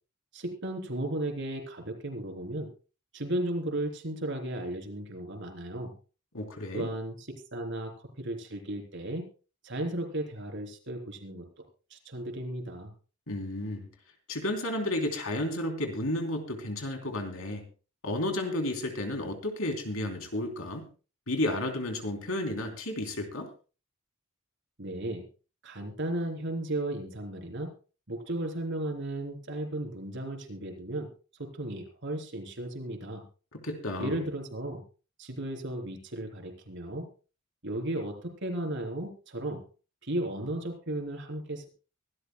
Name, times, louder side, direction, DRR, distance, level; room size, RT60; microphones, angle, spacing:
voice 1, 0.3-2.7 3.1-5.9 6.7-9.3 9.6-11.7 11.9-12.9 24.8-25.3 25.6-27.7 28.1-31.1 31.4-33.2 34.0-34.8 35.2-37.1 37.6-39.6 40.0-41.7, right 1 dB, 60° right, 3 dB, 3.6 m, -35 dB
voice 2, 6.3-6.9 13.3-13.9 14.3-17.7 18.0-20.8 21.3-23.5 33.5-34.1, left 1 dB, 75° left, 4 dB, 3.2 m, -32 dB
24.0 x 12.5 x 2.2 m, 0.35 s
head